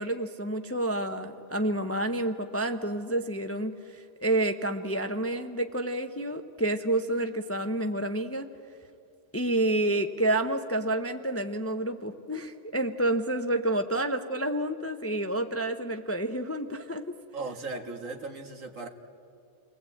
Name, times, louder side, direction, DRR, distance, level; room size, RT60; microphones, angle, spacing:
voice 1, 0.0-8.5 9.3-17.0, right 1 dB, 15° left, 7 dB, 0.7 m, -29 dB
voice 2, 17.3-18.9, right 3 dB, 70° right, 5 dB, 2.0 m, -37 dB
29.5 x 20.0 x 8.5 m, 2.6 s
omnidirectional pair, 1.4 m